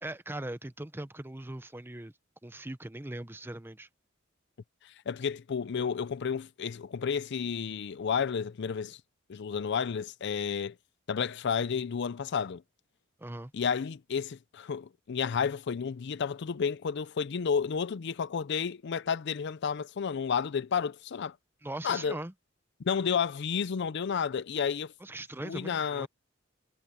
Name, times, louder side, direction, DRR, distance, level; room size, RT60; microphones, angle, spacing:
voice 1, 0.0-2.1 2.4-3.9 13.2-13.5 21.6-22.3 25.0-26.1, right 1 dB, 10° right, 0.7 m, -40 dB
voice 2, 5.1-9.0 9.3-10.7 11.1-12.6 13.5-21.3 21.8-22.2 22.8-24.9 25.4-26.1, left 6 dB, 60° left, 0.5 m, -31 dB
head